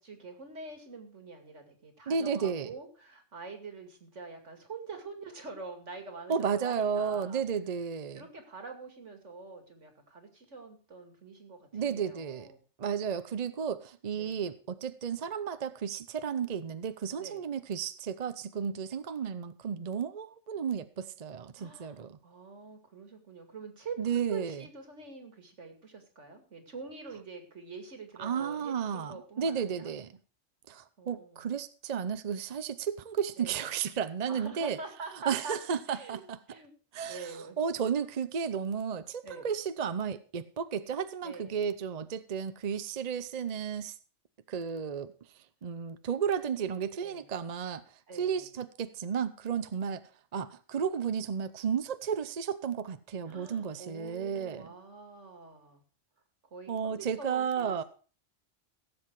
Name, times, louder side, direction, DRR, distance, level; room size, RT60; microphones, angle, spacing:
voice 1, 0.0-7.4 8.1-12.6 14.1-14.5 17.2-17.4 21.6-29.9 31.0-31.5 33.4-33.7 34.3-35.6 35.9-36.7 37.0-37.6 39.2-39.5 41.2-41.6 47.0-47.3 48.1-48.5 53.3-55.8 56.5-57.8, right 4 dB, 70° right, 2.7 m, -45 dB
voice 2, 2.1-2.7 6.3-8.2 11.7-12.5 12.8-22.2 24.0-24.6 28.2-30.1 30.7-34.8 35.3-36.4 36.9-43.9 44.5-45.1 45.6-47.8 48.1-50.0 50.3-54.7 56.7-57.8, right 7 dB, 40° right, 0.7 m, -33 dB
16.5 x 7.9 x 4.7 m
omnidirectional pair, 1.3 m